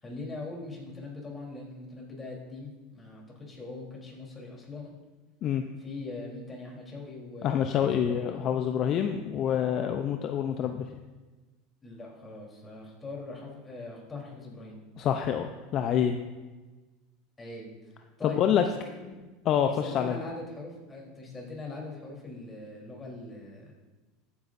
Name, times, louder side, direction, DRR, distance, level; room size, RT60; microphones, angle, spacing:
voice 1, 0.0-4.9 5.8-8.4 11.8-14.8 17.4-17.7 18.2-18.7 19.0-19.2 19.5-23.7, left 3 dB, 20° left, -2 dB, 3.5 m, -41 dB
voice 2, 7.4-10.9 15.0-16.2 18.2-18.6 19.5-20.2, left 9 dB, 45° left, 6 dB, 0.6 m, -27 dB
14.0 x 9.5 x 2.6 m, 1.2 s
supercardioid pair, 105°, 0 cm